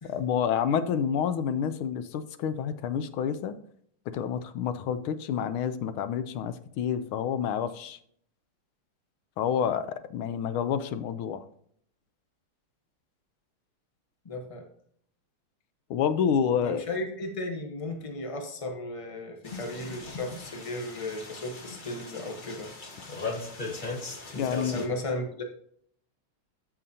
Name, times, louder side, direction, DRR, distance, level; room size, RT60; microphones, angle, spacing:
voice 1, 0.1-3.5 4.1-8.0 9.4-11.4 15.9-16.8 24.3-24.8, left 8 dB, 80° left, 12 dB, 1.5 m, -28 dB
voice 2, 14.2-14.6 16.6-22.7 24.7-25.4, left 2 dB, 55° left, 3 dB, 0.3 m, -35 dB
sound 1, 19.4-24.9, left 3 dB, 30° left, 1.1 m, -38 dB
13.5 x 5.6 x 2.7 m, 0.63 s
omnidirectional pair, 2.3 m